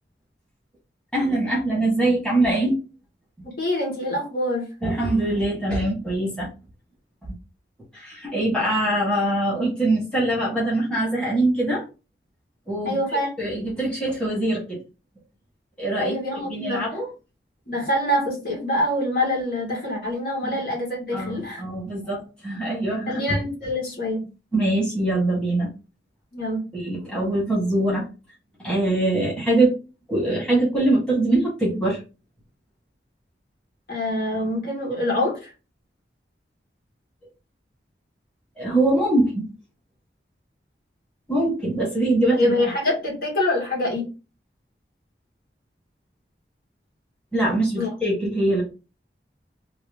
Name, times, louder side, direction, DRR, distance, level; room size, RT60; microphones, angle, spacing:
voice 1, 1.1-2.8 4.8-6.5 7.9-11.8 12.7-13.0 13.4-14.8 15.8-16.1 16.4-17.1 20.4-20.5 21.1-23.2 24.5-25.7 26.7-28.1 28.6-29.7 30.1-32.0 38.6-39.5 41.3-42.5 47.3-48.6, right 1 dB, 5° left, -6 dB, 1.4 m, -23 dB
voice 2, 3.4-4.7 12.8-13.3 16.0-16.8 17.7-21.6 23.1-24.2 26.3-26.7 33.9-35.5 42.3-44.1 47.8-47.9, left 1 dB, 55° left, -3 dB, 1.7 m, -25 dB
3.1 x 2.8 x 3.4 m, 0.31 s
head